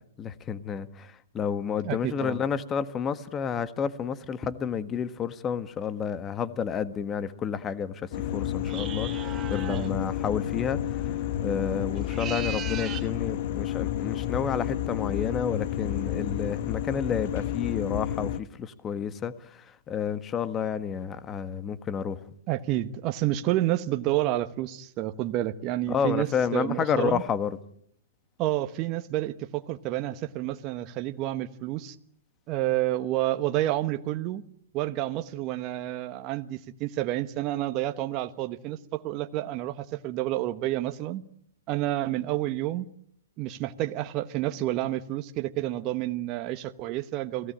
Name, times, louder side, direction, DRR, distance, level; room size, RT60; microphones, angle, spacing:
voice 1, 0.2-11.1 11.4-22.2 25.9-27.6, left 7 dB, 20° left, 1.5 m, -30 dB
voice 2, 1.8-2.4 9.7-10.0 22.5-27.2 28.4-32.0 32.5-34.4 34.7-41.2 41.7-42.9 43.4-47.5, right 14 dB, 35° right, 1.2 m, -29 dB
sound 1, 8.1-18.4, left 11 dB, 50° left, 1.2 m, -30 dB
sound 2, 8.6-9.9 11.9-13.1, right 9 dB, 20° right, 3.2 m, -37 dB
29.5 x 18.5 x 8.8 m
hypercardioid pair, 120°, 0 cm